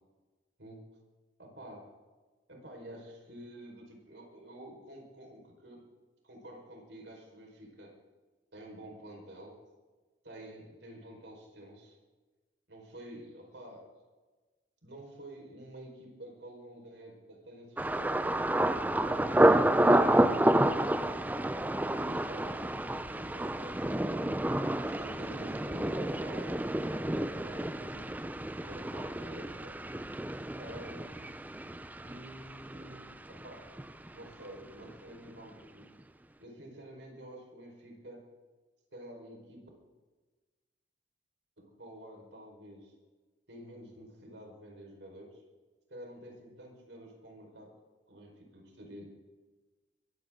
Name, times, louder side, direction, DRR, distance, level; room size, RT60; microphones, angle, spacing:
voice 1, 1.4-1.9 2.5-5.8 6.2-7.9 8.5-9.6 10.2-12.0 12.7-13.9 14.8-18.3 19.0-21.4 21.9-24.3 24.8-28.2 28.6-29.8 30.6-31.3 32.0-33.8 34.1-35.8 36.4-38.3 38.9-39.7 41.6-43.0 43.5-45.4 45.9-47.7 48.1-49.1, right 1 dB, 80° right, 1 dB, 4.8 m, -49 dB
Thunder, 17.8-33.5 33.8-34.4 34.8-35.1, right 1 dB, 10° right, 0.5 m, -29 dB
22.5 x 15.0 x 3.8 m, 1.3 s
head